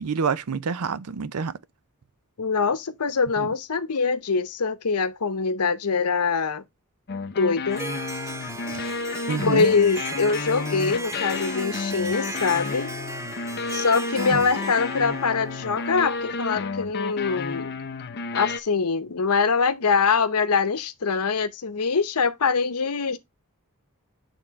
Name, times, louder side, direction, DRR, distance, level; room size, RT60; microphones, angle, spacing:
voice 1, 0.0-1.5 3.4-3.5 8.7-8.8 9.3-9.7 14.3-14.4, right 5 dB, 80° right, 0.5 m, -27 dB
voice 2, 2.4-6.6 7.4-7.8 8.1-8.3 8.6-9.0 9.4-13.0 13.7-17.7 18.3-23.2, left 5 dB, 80° left, 0.8 m, -24 dB
sound 1, 7.1-18.6, left 4 dB, 50° left, 0.6 m, -31 dB
Harp, 7.7-16.5, right 2 dB, 15° right, 0.4 m, -37 dB
8.8 x 3.7 x 3.6 m
head